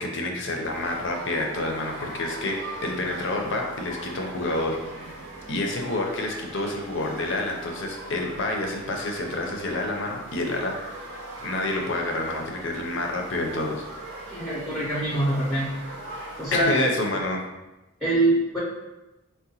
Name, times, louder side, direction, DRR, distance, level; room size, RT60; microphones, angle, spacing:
voice 1, 0.0-2.6 2.8-5.1 5.5-11.0 11.4-13.9 16.5-17.4, left 2 dB, 55° left, 1 dB, 0.5 m, -28 dB
sound 1, 0.6-16.6, right 2 dB, 55° right, 0.6 m, -40 dB
voice 2, 14.3-15.7 16.4-16.7 18.0-18.6, right 1 dB, ahead, -8 dB, 0.5 m, -24 dB
3.7 x 2.1 x 2.8 m, 1.0 s
head